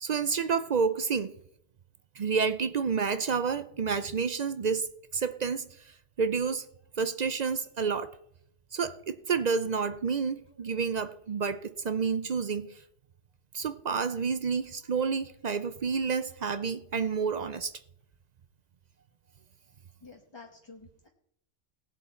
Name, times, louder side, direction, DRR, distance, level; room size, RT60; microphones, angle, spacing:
voice 1, 0.0-1.3 2.2-4.9 5.1-5.7 6.2-6.6 7.0-8.1 8.7-12.7 13.5-17.7, right 5 dB, 55° right, 12 dB, 0.4 m, -29 dB
voice 2, 20.0-21.1, left 4 dB, 25° left, 2 dB, 0.9 m, -50 dB
18.5 x 7.6 x 4.3 m, 0.74 s
omnidirectional pair, 1.3 m